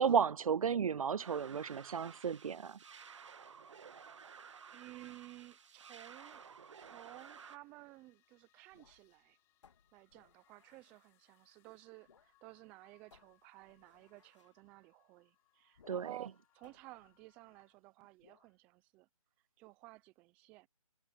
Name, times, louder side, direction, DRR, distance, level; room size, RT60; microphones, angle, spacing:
voice 1, 0.0-2.8 15.9-16.1, right 7 dB, 70° right, 0.4 m, -33 dB
sound 1, 1.2-7.6, right 6 dB, 55° right, 1.8 m, -54 dB
voice 2, 4.7-6.4 6.8-9.4 9.9-19.1 19.6-20.7, right 20 dB, 5° right, 0.5 m, -55 dB
sound 2, 6.3-7.5 8.6-9.3 9.6-11.0 12.0-12.4 12.6-12.7 13.1-14.6 15.7-16.3 16.6-17.7 18.2-18.6, left 6 dB, 55° left, 3.1 m, -68 dB
sound 3, 7.0-17.7, left 16 dB, 15° left, 4.3 m, -75 dB
figure-of-eight pair, 160°, 18 cm